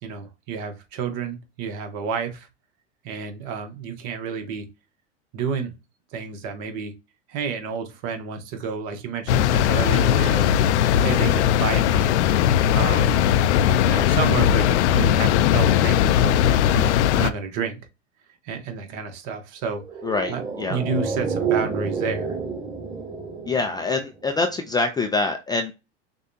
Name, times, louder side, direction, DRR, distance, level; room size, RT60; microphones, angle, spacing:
voice 1, 0.0-2.5 3.0-4.7 5.3-5.7 6.1-6.9 7.3-10.6 11.0-12.1 12.7-13.3 13.8-16.4 16.7-17.8 18.4-19.8 20.3-20.4 20.7-22.4, right 5 dB, 50° right, 1.2 m, -30 dB
sound 1, 9.3-17.3, left 10 dB, 70° left, 0.5 m, -19 dB
sound 2, 19.8-24.4 24.6-24.7, right 5 dB, 20° right, 1.9 m, -29 dB
voice 2, 20.0-20.8 23.5-25.7, left 3 dB, 10° left, 0.3 m, -25 dB
6.5 x 2.3 x 2.7 m
hypercardioid pair, 100°, 36 cm